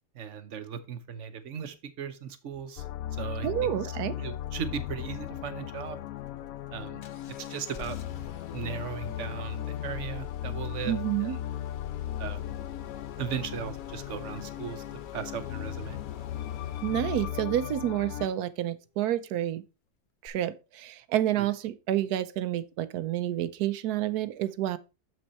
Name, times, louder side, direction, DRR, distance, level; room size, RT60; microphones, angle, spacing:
voice 1, 0.1-2.8 3.1-3.9 4.2-6.0 6.7-7.0 7.5-8.0 8.5-11.4 12.2-12.4 13.2-14.8 15.1-16.0 21.4-21.5, right 7 dB, 55° right, 1.1 m, -37 dB
sound 1, 2.8-18.3, left 12 dB, 70° left, 1.0 m, -37 dB
voice 2, 3.4-4.1 10.9-11.4 16.8-19.6 20.2-24.8, right 12 dB, 80° right, 1.1 m, -29 dB
Engine starting, 7.0-17.6 20.3-20.4, left 6 dB, 50° left, 0.6 m, -48 dB
6.9 x 6.2 x 4.1 m
omnidirectional pair, 1.7 m